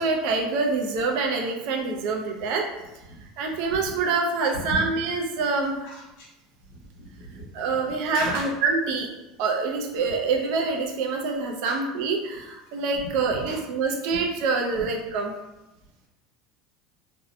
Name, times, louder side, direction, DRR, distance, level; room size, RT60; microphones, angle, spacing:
voice 1, 0.0-2.7 3.4-5.8 7.5-9.1 9.4-15.3, right 4 dB, 60° right, 2 dB, 0.4 m, -26 dB
voice 2, 6.7-7.8 8.1-8.5 11.6-11.8 12.9-13.6, left 1 dB, 70° left, -4 dB, 0.9 m, -37 dB
2.6 x 2.0 x 2.6 m, 0.98 s
cardioid pair, 160°, 0 cm